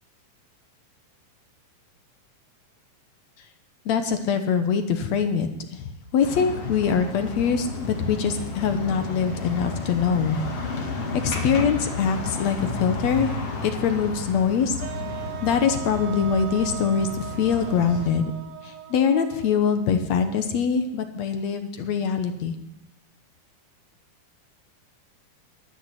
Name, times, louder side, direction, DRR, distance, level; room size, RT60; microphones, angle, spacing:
voice 1, 3.9-5.9 6.1-10.4 10.8-10.9 11.2-13.3 13.6-14.7 15.4-18.2 18.6-22.5, left 6 dB, 65° left, 8 dB, 2.1 m, -23 dB
sound 1, 6.2-18.1, left 3 dB, 50° left, 3.2 m, -32 dB
sound 2, 14.8-20.9, right 12 dB, 75° right, 2.6 m, -39 dB
20.0 x 7.0 x 7.9 m, 0.83 s
omnidirectional pair, 3.7 m